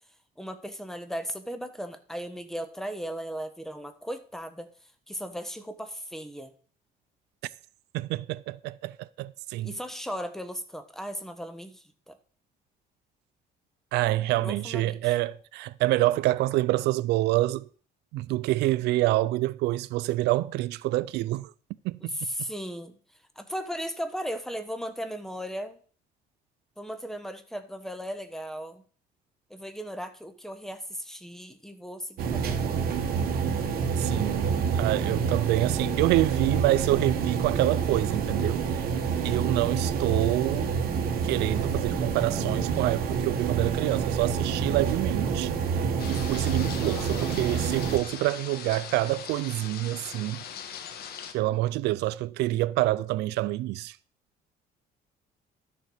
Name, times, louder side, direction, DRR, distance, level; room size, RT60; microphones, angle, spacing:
voice 1, 0.4-4.7 5.1-6.5 9.6-12.2 14.4-15.1 22.0-23.0 23.4-25.8 26.8-28.8 29.5-32.8 46.8-47.4, equal, ahead, 1.2 m, -37 dB
voice 2, 7.9-9.7 13.9-17.7 18.1-21.5 21.8-21.9 34.0-38.8 39.2-40.7 41.2-45.5 46.1-50.4 51.3-54.0, right 17 dB, 85° right, 0.5 m, -27 dB
sound 1, 32.2-48.0, right 6 dB, 65° right, 1.8 m, -28 dB
sound 2, 46.0-51.3, left 8 dB, 65° left, 1.5 m, -40 dB
12.5 x 6.7 x 5.0 m
cardioid pair, 110°, 17 cm